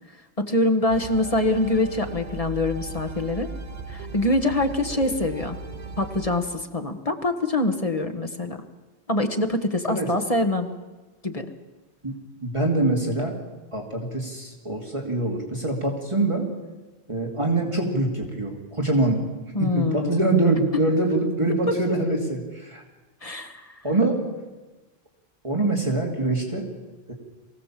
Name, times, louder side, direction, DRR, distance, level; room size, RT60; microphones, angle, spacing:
voice 1, 0.4-3.5 3.9-5.6 6.0-8.6 9.1-10.7 11.2-11.5 19.5-20.2 21.7-22.2 23.2-23.7, left 2 dB, 35° left, 6 dB, 1.4 m, -24 dB
sound 1, 0.9-6.4, right 3 dB, 45° right, 0.9 m, -37 dB
voice 2, 12.4-13.3 13.7-16.5 17.1-19.2 19.6-22.8 23.8-24.2 25.4-26.7 27.1-27.2, right 2 dB, 30° right, -1 dB, 2.7 m, -24 dB
23.0 x 16.5 x 7.5 m, 1.2 s
omnidirectional pair, 1.0 m